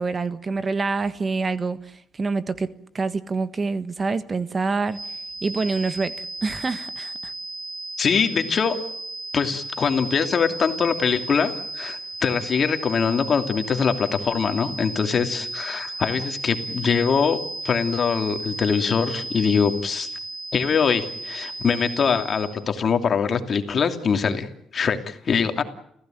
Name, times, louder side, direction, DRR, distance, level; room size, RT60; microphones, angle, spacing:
voice 1, 0.0-5.0 5.4-7.3, right 4 dB, 35° right, 13 dB, 1.5 m, -26 dB
sound 1, 4.9-22.7, right 2 dB, 10° right, 1.5 m, -34 dB
voice 2, 8.0-8.8 9.3-17.4 17.6-20.1 20.5-24.5 24.7-25.6, left 6 dB, 50° left, 7 dB, 2.7 m, -23 dB
30.0 x 16.0 x 9.1 m, 0.75 s
cardioid pair, 90°, 0 cm